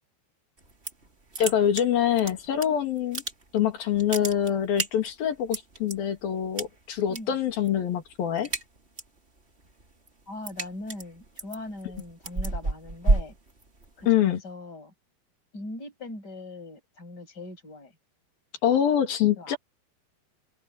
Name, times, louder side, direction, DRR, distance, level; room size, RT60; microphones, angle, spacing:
sound 1, 0.6-1.1 1.3-2.7 3.0-3.6 3.9-5.9 6.6-7.2 7.5-7.8 8.1-9.2 9.6-14.1, right 2 dB, 25° right, 1.4 m, -30 dB
voice 1, 1.4-3.2 3.5-8.5 14.1-14.4 18.6-19.6, left 10 dB, 55° left, 4.0 m, -25 dB
voice 2, 10.3-13.3 14.0-14.9 15.5-17.9 19.4-19.6, left 2 dB, 20° left, 8.0 m, -40 dB
open air
omnidirectional pair, 5.5 m